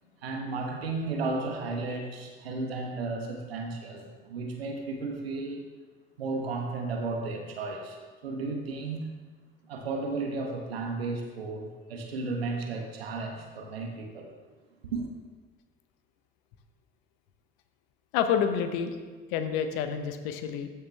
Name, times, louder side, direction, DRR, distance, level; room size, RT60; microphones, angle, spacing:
voice 1, 0.2-5.6 6.2-9.1 9.7-14.3 14.9-15.1, right 3 dB, 85° right, 2 dB, 1.1 m, -34 dB
voice 2, 18.1-19.0 19.3-20.7, left 7 dB, 70° left, 8 dB, 0.9 m, -28 dB
13.5 x 5.7 x 3.3 m, 1.4 s
hypercardioid pair, 60°, 29 cm